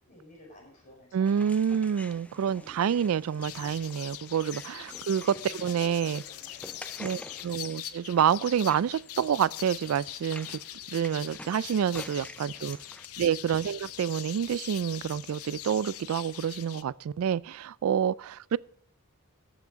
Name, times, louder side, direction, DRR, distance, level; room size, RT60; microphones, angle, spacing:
voice 1, 0.0-1.6 2.4-2.9 4.5-4.8 5.2-7.5 12.5-12.8 13.1-13.3, left 1 dB, 35° left, 5.6 m, -53 dB
voice 2, 1.1-6.2 7.0-10.6 10.9-12.8 13.2-18.6, right 8 dB, 75° right, 0.3 m, -28 dB
sound 1, 1.2-13.1, left 1 dB, 5° left, 0.5 m, -49 dB
sound 2, 3.4-16.8, left 13 dB, 80° left, 0.6 m, -42 dB
14.5 x 6.1 x 5.1 m
head